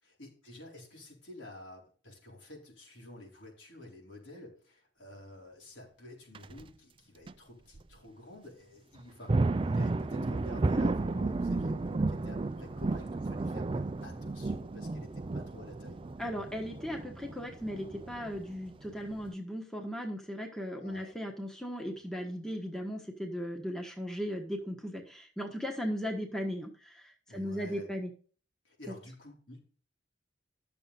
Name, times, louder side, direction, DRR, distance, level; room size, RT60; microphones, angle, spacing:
voice 1, 0.0-9.4 9.6-16.0 20.7-21.1 27.3-27.9 28.6-29.6, left 1 dB, 75° left, -2 dB, 4.1 m, -50 dB
sound 1, 6.3-6.6 7.3-7.4 7.7-7.8 9.0-19.3, right 2 dB, 30° right, 0.4 m, -33 dB
voice 2, 16.2-28.1, equal, 5° left, 1 dB, 1.2 m, -37 dB
11.5 x 6.8 x 4.1 m, 0.42 s
head